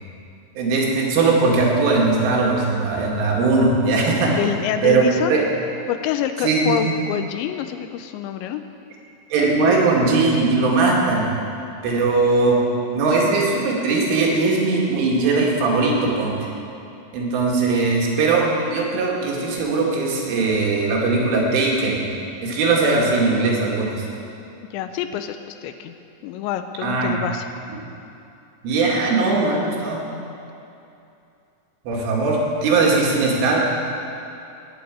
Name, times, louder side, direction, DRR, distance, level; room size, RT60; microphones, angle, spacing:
voice 1, 0.6-4.3 4.8-5.4 6.4-6.9 9.3-11.3 11.8-12.6 12.9-16.4 17.1-22.0 22.4-24.1 26.8-27.2 28.6-30.0 31.9-33.6, right 3 dB, 85° right, -3 dB, 4.7 m, -19 dB
voice 2, 4.4-5.4 5.9-8.6 24.7-25.9 26.2-27.5, left 10 dB, 85° left, 8 dB, 2.8 m, -26 dB
19.0 x 7.3 x 9.1 m, 2.7 s
omnidirectional pair, 5.5 m